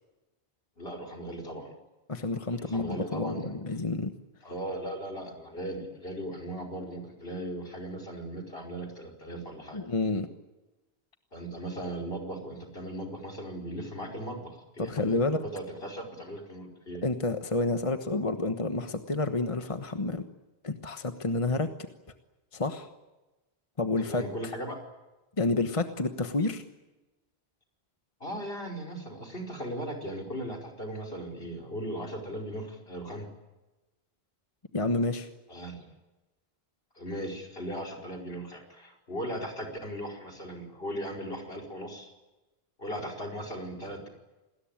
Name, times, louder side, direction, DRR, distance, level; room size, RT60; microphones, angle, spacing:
voice 1, 0.8-1.7 2.5-3.6 4.4-9.9 11.3-17.0 24.0-24.8 28.2-33.3 35.5-35.9 37.0-42.1 42.8-44.1, right 1 dB, 65° left, 5 dB, 5.2 m, -38 dB
voice 2, 2.1-4.1 9.7-10.3 14.8-15.4 17.0-20.2 20.6-21.7 22.5-22.9 23.8-24.5 25.4-26.6 34.7-35.3, left 2 dB, 30° left, 7 dB, 1.3 m, -29 dB
27.5 x 20.5 x 8.9 m, 1.1 s
omnidirectional pair, 1.1 m